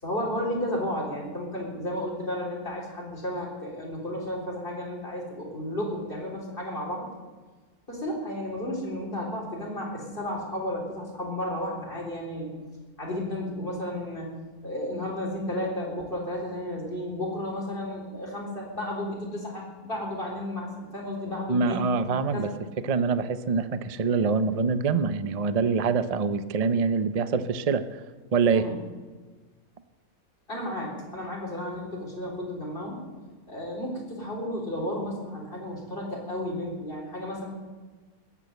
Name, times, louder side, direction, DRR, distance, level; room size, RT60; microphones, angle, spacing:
voice 1, 0.0-7.1 7.9-12.5 13.0-14.4 14.6-21.9 22.1-22.5 28.5-28.7 30.5-33.0 33.5-37.5, left 1 dB, 35° left, -2 dB, 4.2 m, -33 dB
voice 2, 21.5-22.5 22.8-28.0 28.3-28.7, right 5 dB, 55° right, 12 dB, 0.4 m, -25 dB
20.0 x 8.4 x 8.0 m, 1.4 s
omnidirectional pair, 1.6 m